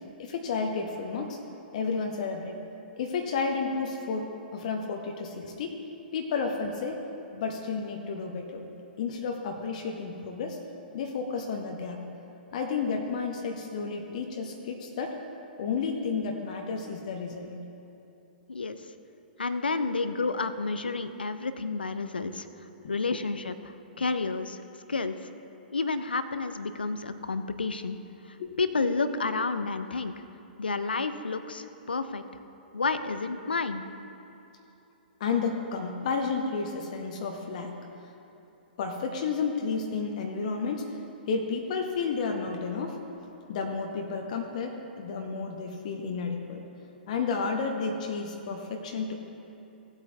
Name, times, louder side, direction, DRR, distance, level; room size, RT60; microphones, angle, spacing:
voice 1, 0.2-1.4 1.7-2.5 3.0-5.8 6.1-7.0 7.3-8.6 9.0-10.6 10.9-12.0 12.5-15.2 15.6-17.5 22.8-23.2 28.4-28.5 35.2-37.7 38.8-41.0 41.3-43.0 43.5-46.6 47.1-49.1, left 5 dB, 45° left, 2 dB, 0.9 m, -31 dB
voice 2, 18.5-18.9 19.4-24.6 24.9-25.3 25.7-28.0 28.2-30.1 30.6-32.2 32.7-33.8, left 4 dB, 70° left, 11 dB, 0.6 m, -30 dB
17.0 x 8.2 x 2.8 m, 2.9 s
figure-of-eight pair, 115°, 5 cm